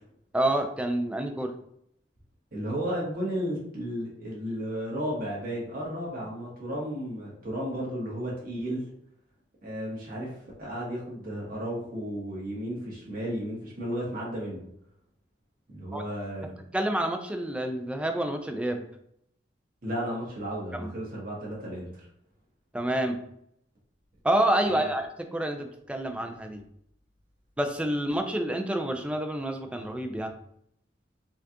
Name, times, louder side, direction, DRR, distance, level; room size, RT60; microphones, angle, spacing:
voice 1, 0.3-1.5 15.9-16.0 16.7-18.8 20.7-20.9 22.7-23.2 24.2-26.6 27.6-30.3, right 1 dB, 5° right, 5 dB, 0.4 m, -28 dB
voice 2, 2.5-8.8 9.6-14.6 15.7-16.6 19.8-22.1 24.6-24.9, equal, 55° right, -5 dB, 1.4 m, -34 dB
4.3 x 2.4 x 2.8 m, 0.72 s
head